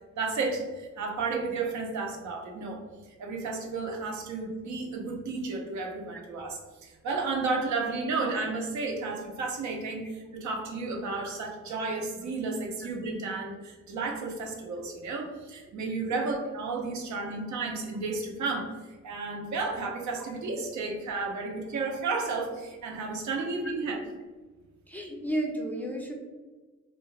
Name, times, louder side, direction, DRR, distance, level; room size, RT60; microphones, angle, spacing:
voice 1, 0.1-2.8 3.2-18.7 19.0-24.0, right 3 dB, 70° right, 1 dB, 0.7 m, -32 dB
voice 2, 23.6-24.0 24.9-26.1, right 1 dB, 5° left, -1 dB, 0.4 m, -34 dB
2.5 x 2.2 x 3.2 m, 1.3 s
cardioid pair, 90°, 30 cm